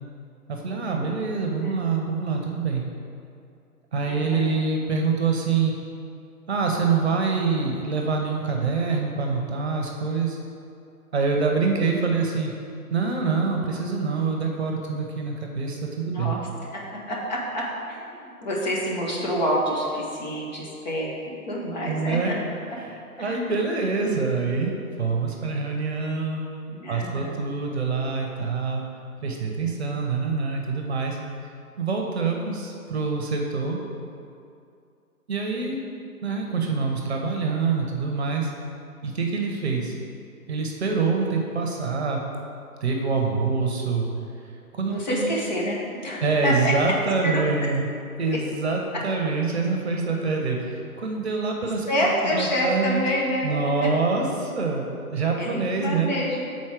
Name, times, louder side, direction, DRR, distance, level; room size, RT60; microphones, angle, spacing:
voice 1, 0.5-2.8 3.9-5.7 6.5-10.4 11.1-12.5 12.9-16.3 21.8-22.3 22.8-24.7 25.0-26.4 26.9-28.8 29.2-31.2 31.8-33.8 35.3-35.8 36.2-38.5 39.0-40.0 40.5-42.2 42.8-44.1 44.7-45.3 46.2-47.9 48.2-53.0 53.4-56.1, right 4 dB, 45° right, 1 dB, 0.9 m, -25 dB
voice 2, 1.6-2.1 4.1-4.5 16.0-16.4 16.7-16.8 17.1-22.3 23.2-23.5 26.7-27.4 44.9-45.8 46.0-46.7 47.2-47.4 51.9-53.9 55.4-56.4, equal, 30° left, -4 dB, 1.0 m, -28 dB
7.1 x 4.2 x 4.8 m, 2.5 s
figure-of-eight pair, 145°, 45 cm